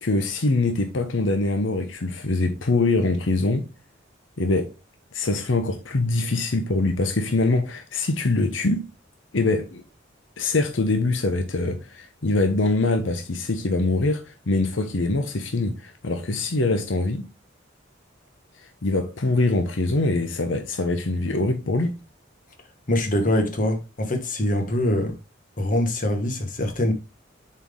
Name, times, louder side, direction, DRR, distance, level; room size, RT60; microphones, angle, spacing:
voice 1, 0.0-3.7 4.4-4.7 5.1-8.9 9.3-9.8 10.4-17.3 18.8-22.0, left 2 dB, 80° left, 0.9 m, -23 dB
voice 2, 22.9-25.1 25.6-26.9, left 1 dB, 45° left, 1.5 m, -23 dB
7.2 x 4.5 x 3.7 m
head